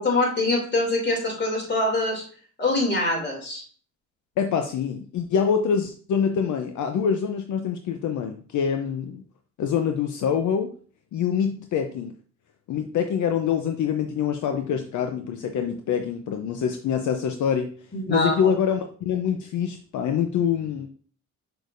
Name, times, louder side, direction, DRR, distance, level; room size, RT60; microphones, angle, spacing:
voice 1, 0.0-2.2 2.6-3.6 17.9-18.3, left 2 dB, 35° left, 0 dB, 2.8 m, -24 dB
voice 2, 4.4-9.2 9.6-10.7 11.1-12.1 12.7-17.7 18.1-20.9, left 7 dB, 75° left, 5 dB, 0.7 m, -25 dB
6.7 x 6.3 x 2.6 m, 0.43 s
cardioid pair, 90°, 30 cm